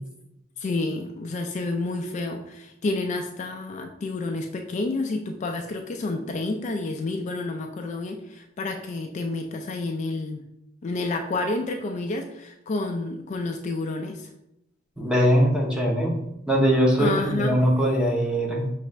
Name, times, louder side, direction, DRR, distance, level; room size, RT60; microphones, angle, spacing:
voice 1, 0.6-10.4 10.8-14.3 17.0-17.6, left 2 dB, 40° left, 3 dB, 0.3 m, -29 dB
voice 2, 15.0-16.2 16.5-18.7, equal, 5° right, -1 dB, 0.7 m, -21 dB
5.9 x 2.4 x 3.2 m, 0.85 s
head